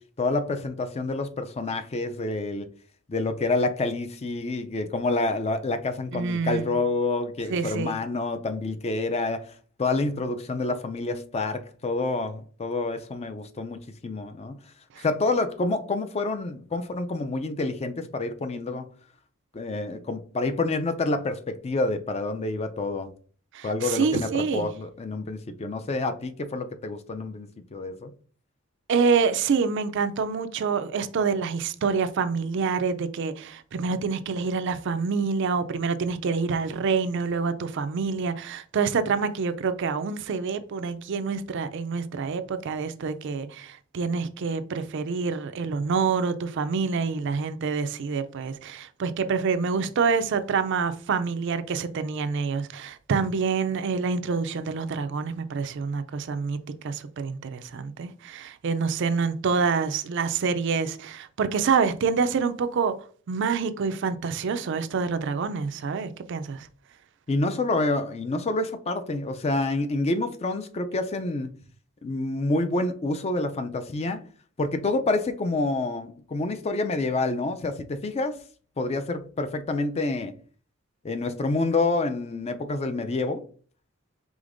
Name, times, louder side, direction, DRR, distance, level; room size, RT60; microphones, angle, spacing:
voice 1, 0.2-2.7 3.1-9.5 9.8-14.6 15.0-18.9 19.5-23.1 23.6-28.1 67.3-71.5 72.0-74.2 74.6-78.4 78.8-80.3 81.0-83.4, left 2 dB, 30° left, 0.4 m, -28 dB
voice 2, 6.1-6.8 7.5-8.0 15.0-15.1 23.5-24.7 28.9-56.6 56.8-62.9 63.3-66.7, right 5 dB, 60° right, 0.4 m, -27 dB
5.0 x 3.5 x 2.5 m
head